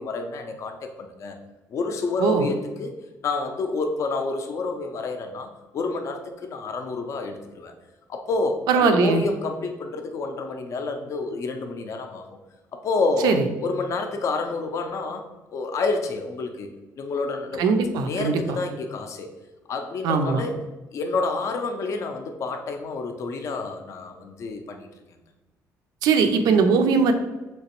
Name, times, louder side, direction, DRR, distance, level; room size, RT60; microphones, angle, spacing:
voice 1, 0.0-1.4 1.7-2.9 3.2-7.7 8.1-12.2 12.7-15.2 15.5-17.7 18.0-19.3 19.7-20.6 20.9-24.9, left 3 dB, 50° left, 5 dB, 0.4 m, -29 dB
voice 2, 8.7-9.2 13.2-13.3 17.6-18.6 20.0-20.4 26.0-27.1, right 5 dB, 85° right, 7 dB, 0.4 m, -20 dB
3.3 x 2.9 x 2.9 m, 1.1 s
cardioid pair, 120°, 6 cm